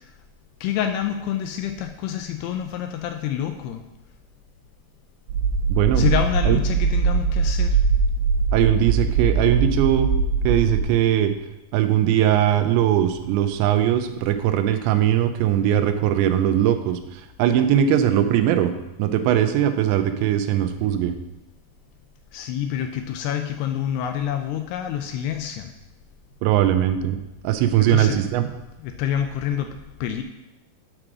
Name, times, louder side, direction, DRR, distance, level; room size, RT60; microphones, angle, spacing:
voice 1, 0.6-3.8 6.0-7.8 22.3-25.7 27.8-28.2 28.8-30.2, left 9 dB, 85° left, 6 dB, 2.4 m, -27 dB
sound 1, 5.3-10.8, right 5 dB, 70° right, 2.4 m, -21 dB
voice 2, 5.7-6.1 6.5-6.6 8.5-10.1 10.4-11.3 11.7-18.7 19.0-21.1 26.4-28.4, right 11 dB, 85° right, 8 dB, 2.9 m, -20 dB
8.7 x 5.0 x 6.1 m, 0.97 s
omnidirectional pair, 5.1 m